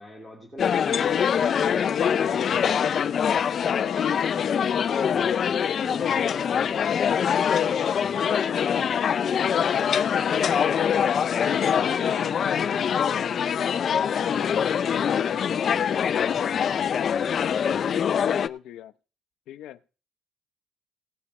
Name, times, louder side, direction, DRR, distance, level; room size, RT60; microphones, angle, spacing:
voice 1, 0.0-1.5 14.1-14.5, equal, 5° right, -3 dB, 3.3 m, -46 dB
sound 1, 0.6-18.5, left 8 dB, 45° left, 0.4 m, -24 dB
voice 2, 2.2-3.1 3.8-5.5 11.4-13.3 14.0-14.7 15.1-16.7 17.4-18.9 19.5-19.8, left 12 dB, 80° left, 12 dB, 0.7 m, -40 dB
18.0 x 6.5 x 4.3 m, 0.34 s
cardioid pair, 135°, 0 cm